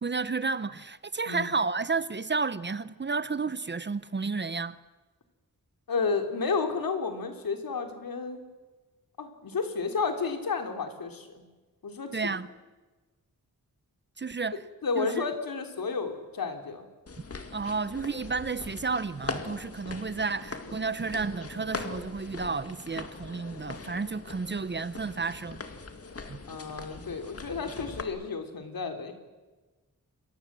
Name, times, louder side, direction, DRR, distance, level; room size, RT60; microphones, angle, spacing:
voice 1, 0.0-4.8 12.1-12.5 14.2-14.6 15.0-15.2 17.5-25.6 26.3-26.4, right 4 dB, 30° right, 0.8 m, -31 dB
voice 2, 5.9-8.4 9.2-11.4 11.8-12.2 14.8-16.9 26.5-29.1, left 4 dB, 70° left, 3.6 m, -31 dB
sound 1, 17.1-28.0, left 4 dB, 40° left, 2.2 m, -41 dB
28.5 x 23.0 x 7.6 m
wide cardioid pair, 125°, 35 cm